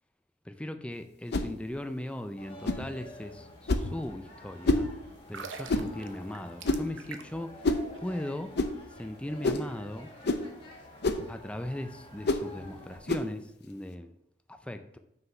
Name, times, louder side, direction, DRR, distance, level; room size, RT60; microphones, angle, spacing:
voice 1, 0.5-4.9 5.3-7.6 8.0-8.5 8.9-10.1 11.3-14.1 14.5-15.0, left 1 dB, 5° left, 8 dB, 0.4 m, -38 dB
sound 1, 1.3-1.5 2.6-2.9 3.7-3.9 4.6-4.9 5.7-5.9 6.6-6.9 7.6-7.9 8.5-8.7 9.4-9.7 10.2-10.5 11.0-11.3 12.2-12.5 13.1-13.3, left 2 dB, 60° left, 0.6 m, -27 dB
sound 2, 2.4-13.0, left 1 dB, 30° left, 1.7 m, -50 dB
sound 3, 5.2-7.5 7.8-8.0, right 5 dB, 85° right, 0.7 m, -44 dB
6.4 x 4.9 x 5.5 m, 0.81 s
head